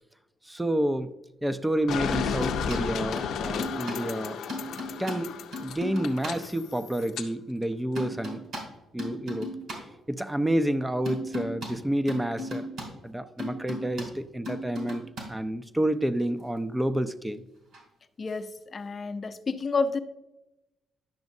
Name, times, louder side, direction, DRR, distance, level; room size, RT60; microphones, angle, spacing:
voice 1, 0.5-1.1 1.4-4.4 5.0-5.4 5.6-8.4 8.9-9.5 10.1-12.7 13.0-17.4, right 1 dB, 10° right, 12 dB, 0.5 m, -29 dB
sound 1, 1.9-7.3, left 7 dB, 80° left, 0.5 m, -33 dB
sound 2, 2.1-2.8 3.2-4.0 4.5-6.4 7.9-8.6 9.0-9.8 11.0-11.7 12.1-12.9 13.4-14.1 14.4-15.2 17.7-17.8, left 1 dB, 70° right, 2.9 m, -36 dB
voice 2, 18.2-20.0, left 4 dB, 40° left, 8 dB, 0.6 m, -30 dB
10.5 x 6.2 x 2.6 m, 0.98 s
cardioid pair, 90°, 0 cm